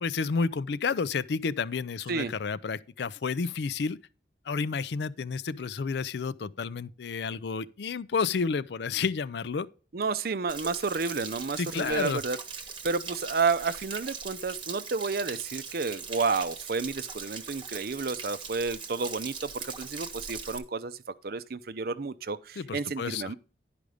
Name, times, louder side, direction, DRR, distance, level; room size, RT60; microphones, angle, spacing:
voice 1, 0.0-4.0 4.5-9.7 11.6-12.2 22.6-23.3, left 5 dB, 65° left, 0.4 m, -30 dB
voice 2, 9.9-12.4 12.8-21.0 21.2-23.3, right 4 dB, 55° right, 0.6 m, -31 dB
Stream / Splash splatter / Trickle dribble, 10.5-20.6, right 5 dB, 25° right, 1.0 m, -40 dB
11.0 x 5.1 x 4.9 m
head